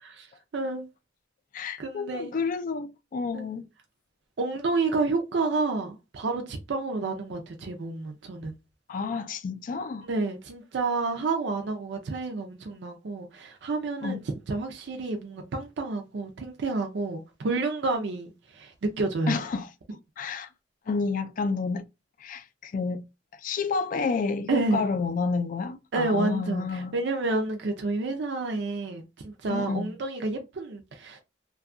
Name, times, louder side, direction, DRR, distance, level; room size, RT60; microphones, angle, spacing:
voice 1, 0.5-0.8 1.8-2.3 3.3-3.4 4.4-8.5 10.0-14.2 14.5-19.4 24.5-24.9 25.9-31.2, right 3 dB, 65° right, 0.5 m, -29 dB
voice 2, 1.5-3.7 8.9-10.1 14.0-14.2 19.3-19.7 20.2-20.5 20.9-21.9 22.2-23.0 23.3-27.0 29.5-29.9, left 4 dB, 45° left, 0.3 m, -30 dB
2.7 x 2.3 x 2.5 m
head